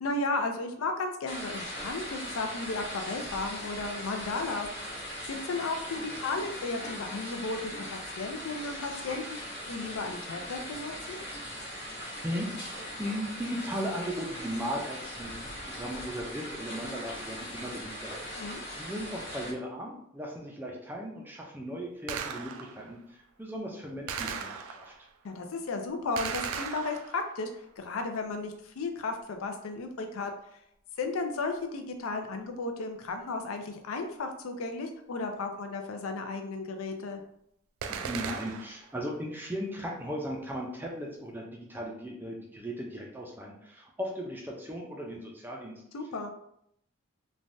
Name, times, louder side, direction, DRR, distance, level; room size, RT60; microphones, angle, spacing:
voice 1, 0.0-11.2 18.4-18.6 25.2-30.3 31.0-37.2 45.9-46.3, left 3 dB, 80° left, 5 dB, 0.4 m, -34 dB
sound 1, 1.3-19.5, equal, 55° left, 1.1 m, -40 dB
voice 2, 12.0-18.4 18.8-24.9 37.9-45.7, equal, 10° right, -1 dB, 0.4 m, -37 dB
Gunshot gunfire, 22.1-22.9 24.1-25.1 26.2-27.4 37.8-38.9, right 6 dB, 85° right, 0.3 m, -37 dB
3.2 x 2.2 x 2.5 m, 0.73 s
head